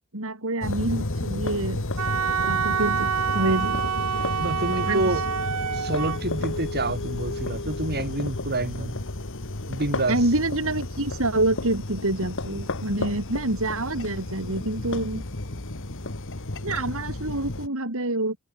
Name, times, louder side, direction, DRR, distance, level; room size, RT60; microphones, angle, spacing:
voice 1, 0.1-1.8 2.5-3.1 3.3-4.0 4.9-5.0 10.1-15.2 16.6-18.4, right 2 dB, 65° right, 5.1 m, -27 dB
sound 1, 0.6-17.7, left 2 dB, 60° left, 2.1 m, -32 dB
Wind instrument woodwind instrument, 2.0-6.2, right 8 dB, 80° right, 0.7 m, -27 dB
voice 2, 4.4-5.2 5.7-9.0 9.7-10.2, right 2 dB, 45° right, 6.8 m, -28 dB
head